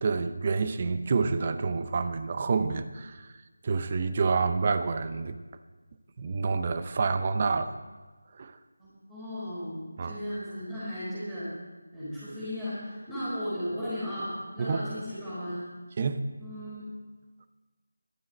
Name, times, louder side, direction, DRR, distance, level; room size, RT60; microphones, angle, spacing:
voice 1, 0.0-3.2 3.6-5.4 6.2-7.7 8.4-8.5 10.0-10.2 14.6-14.8 16.0-16.2, right 4 dB, 30° right, 11 dB, 0.7 m, -28 dB
voice 2, 9.1-11.5 11.9-15.6 16.4-16.9, equal, 5° right, -16 dB, 4.6 m, -35 dB
14.5 x 12.0 x 4.2 m, 1.3 s
figure-of-eight pair, 165°, 0 cm